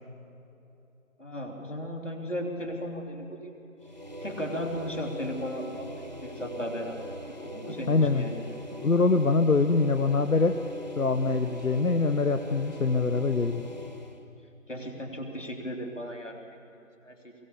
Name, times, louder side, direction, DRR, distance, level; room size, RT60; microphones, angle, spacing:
voice 1, 1.2-3.5 4.2-7.1 7.4-8.4 14.7-16.4 17.0-17.2, equal, 60° left, 1 dB, 3.2 m, -35 dB
sound 1, 3.8-14.2, equal, 35° right, 1.5 m, -41 dB
voice 2, 7.9-8.3 8.8-10.5 11.0-13.6, left 3 dB, 85° left, 8 dB, 1.0 m, -24 dB
22.5 x 17.0 x 7.0 m, 2.8 s
figure-of-eight pair, 180°, 41 cm